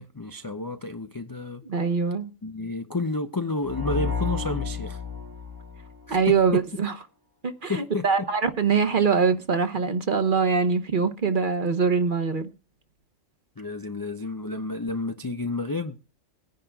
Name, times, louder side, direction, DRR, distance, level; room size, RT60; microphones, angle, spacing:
voice 1, 0.0-1.6 2.4-5.0 6.1-6.6 7.7-8.3 13.6-16.0, left 2 dB, 35° left, 0.3 m, -30 dB
voice 2, 1.6-2.3 6.1-6.9 7.4-12.5, right 5 dB, 45° right, 1.1 m, -23 dB
sound 1, 3.6-6.5, left 5 dB, 15° right, 1.2 m, -31 dB
22.0 x 10.5 x 2.3 m
omnidirectional pair, 1.3 m